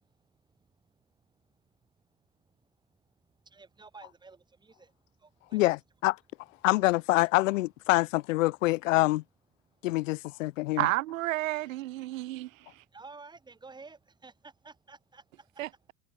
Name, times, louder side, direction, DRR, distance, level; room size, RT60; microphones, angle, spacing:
voice 1, 0.0-1.9 2.4-5.6 9.6-10.0 10.5-10.7 12.1-15.6, right 4 dB, 10° right, 5.1 m, -54 dB
voice 2, 5.5-6.2 6.6-9.2 9.8-10.8, left 20 dB, 75° left, 1.1 m, -26 dB
voice 3, 10.8-12.5 15.6-15.9, right 16 dB, 85° right, 1.8 m, -31 dB
supercardioid pair, 140°, 38 cm